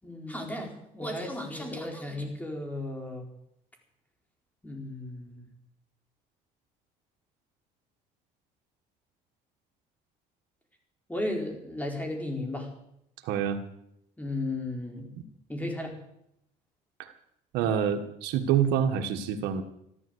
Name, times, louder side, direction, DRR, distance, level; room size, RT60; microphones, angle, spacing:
voice 1, 0.0-3.3 4.6-5.5 11.1-12.7 14.2-15.1 15.5-16.0, left 1 dB, 10° left, 2 dB, 4.5 m, -34 dB
voice 2, 13.2-13.6 15.1-15.2 17.0-17.1 17.5-19.6, right 8 dB, 85° right, 5 dB, 1.5 m, -27 dB
13.5 x 12.5 x 8.0 m, 0.77 s
cardioid pair, 105°, 17 cm